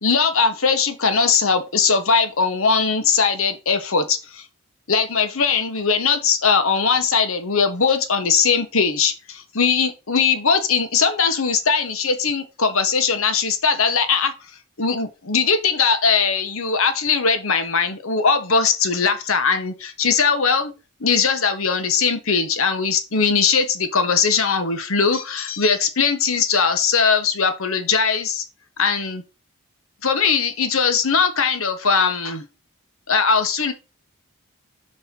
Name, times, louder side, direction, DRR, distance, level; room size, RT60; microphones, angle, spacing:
voice 1, 0.0-4.4 4.9-14.3 14.8-20.7 21.0-28.4 28.8-29.2 30.0-32.5 33.1-33.7, left 5 dB, 70° left, 1.2 m, -20 dB
6.4 x 4.4 x 5.3 m
head